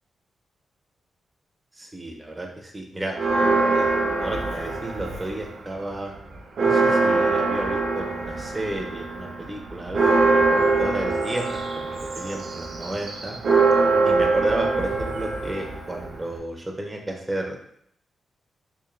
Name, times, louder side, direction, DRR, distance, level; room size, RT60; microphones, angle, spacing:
voice 1, 1.8-3.3 3.7-3.9 4.2-6.1 6.6-13.4 14.0-17.6, right 1 dB, 10° right, 0 dB, 0.6 m, -33 dB
Church bell, 3.1-5.5 5.9-6.0 6.3-16.4, right 3 dB, 60° right, 0.5 m, -23 dB
3.2 x 2.6 x 3.7 m, 0.69 s
wide cardioid pair, 135°, 0 cm